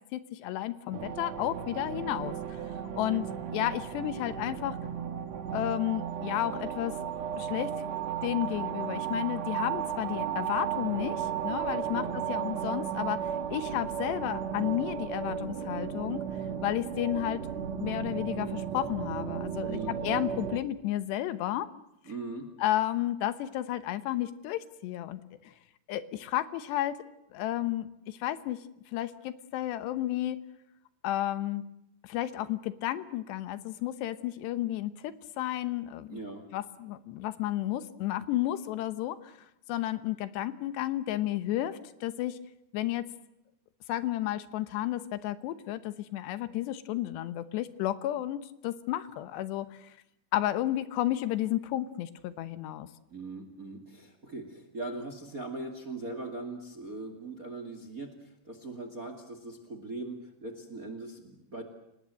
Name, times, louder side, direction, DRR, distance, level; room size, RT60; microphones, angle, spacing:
voice 1, 0.1-2.6 3.0-4.8 5.5-7.0 7.4-7.7 8.2-16.2 16.6-17.4 17.8-21.7 22.6-25.5 25.9-27.0 27.3-28.6 28.9-30.4 31.0-31.6 32.0-36.2 36.5-39.3 39.7-42.4 42.7-43.1 43.9-49.9 50.3-52.9, left 14 dB, 80° left, 13 dB, 3.1 m, -32 dB
sound 1, 0.9-20.6, right 8 dB, 55° right, 2.1 m, -35 dB
voice 2, 11.9-12.5 19.6-20.0 22.0-22.5 36.1-36.4 53.1-61.6, right 2 dB, 30° right, 8 dB, 1.8 m, -40 dB
29.5 x 19.0 x 7.7 m, 0.82 s
omnidirectional pair, 5.0 m